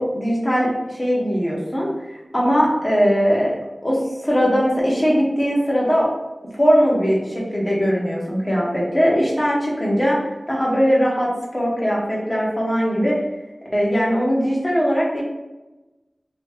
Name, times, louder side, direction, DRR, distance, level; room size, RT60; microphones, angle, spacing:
voice 1, 0.0-3.5 3.8-6.1 6.5-10.2 10.5-13.2 13.7-15.2, equal, 30° left, -4 dB, 1.1 m, -20 dB
3.1 x 2.7 x 3.4 m, 1.1 s
wide cardioid pair, 55°, 0 cm